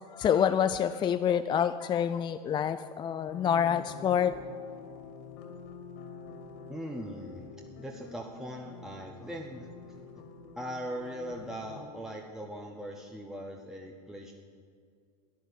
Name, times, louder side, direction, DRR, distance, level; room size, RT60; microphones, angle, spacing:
voice 1, 0.1-4.3, left 8 dB, 20° left, 11 dB, 0.4 m, -27 dB
sound 1, 3.2-11.8, left 5 dB, 60° left, 2.7 m, -47 dB
voice 2, 6.7-7.5 7.8-9.8 10.1-10.2 10.5-14.3, equal, ahead, 1 dB, 1.0 m, -40 dB
11.5 x 10.0 x 8.3 m, 2.2 s
hypercardioid pair, 110°, 21 cm